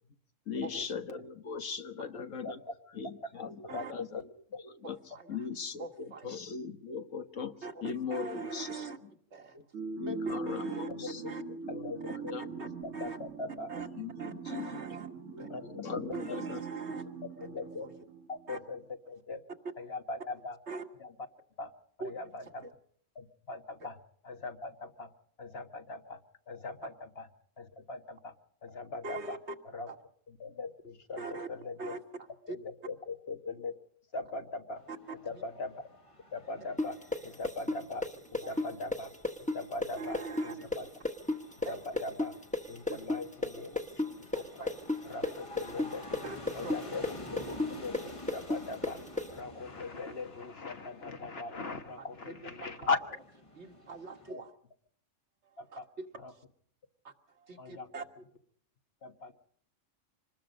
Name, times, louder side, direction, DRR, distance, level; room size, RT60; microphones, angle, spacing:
voice 1, 0.4-2.6 2.9-5.0 5.3-7.5 7.8-8.8 9.5-9.6 9.9-11.2 11.7-11.9 12.1-12.5 13.9-14.9 15.3-16.6, left 6 dB, 80° left, 7 dB, 1.7 m, -40 dB
voice 2, 2.1-2.6 3.6-4.2 4.5-4.6 5.1-5.2 10.9-11.1 11.7-13.7 15.5-16.0 17.4-17.9 18.3-19.4 19.8-20.6 21.0-21.1 21.6-21.7 22.0-22.7 23.1-25.1 25.4-26.2 26.5-27.3 27.6-28.3 28.6-29.4 29.6-29.9 30.3-32.0 32.5-33.7 34.1-34.8 35.2-35.8 36.3-39.1 39.5-40.9 41.6-42.4 42.7-43.8 44.1-44.8 45.0-46.1 46.5-47.4 47.7-53.0 54.3-54.4 55.6-55.9 56.2-56.3 57.6-57.9 58.2-58.3 59.0-59.3, left 3 dB, 55° left, 6 dB, 1.6 m, -40 dB
voice 3, 5.8-6.3 7.6-7.7 8.1-9.0 9.3-9.6 10.0-10.9 11.3-11.4 12.1-12.2 12.6-12.7 12.9-13.2 13.7-13.9 14.2-15.1 15.4-15.5 16.1-17.0 17.8-17.9 18.5-18.6 20.7-20.9 22.0-22.1 22.6-22.7 29.0-29.4 29.9-30.0 31.2-31.5 31.8-32.0 40.0-40.7 41.7-41.8 42.9-43.0 44.3-44.4 45.2-45.3 46.2-46.4 46.6-46.7 52.0-52.9 53.6-54.5 55.7-56.4 57.0-58.0, right 4 dB, 60° right, 4 dB, 2.0 m, -41 dB
sound 1, 9.7-18.5, right 4 dB, 80° right, 2.2 m, -42 dB
sound 2, 34.8-54.3, left 1 dB, 25° left, 1.3 m, -50 dB
sound 3, 36.8-44.4 44.7-49.3, left 2 dB, 5° left, 1.4 m, -32 dB
26.5 x 20.5 x 5.3 m, 0.65 s
omnidirectional pair, 1.3 m